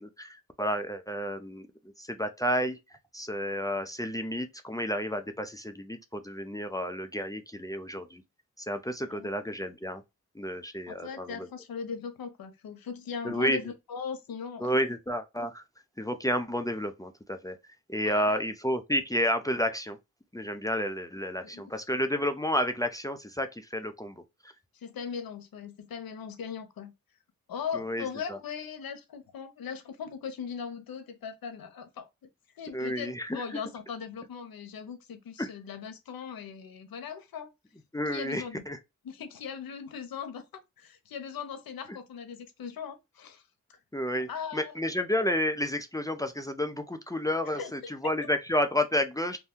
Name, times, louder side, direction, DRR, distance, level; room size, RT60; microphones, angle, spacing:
voice 1, 0.0-1.7 2.0-8.2 8.6-10.0 10.3-11.5 13.2-13.7 14.6-15.6 16.0-17.6 17.9-20.0 20.3-24.5 27.7-28.4 32.7-33.6 35.4-35.5 37.9-38.8 43.9-49.4, equal, 10° left, 0.5 m, -31 dB
voice 2, 10.9-14.7 18.1-18.4 21.4-21.6 24.7-26.9 27.5-32.1 32.6-37.5 38.1-38.6 39.0-43.4 44.3-44.7 47.5-47.9, left 6 dB, 85° left, 0.7 m, -39 dB
2.6 x 2.2 x 3.5 m
cardioid pair, 50°, 34 cm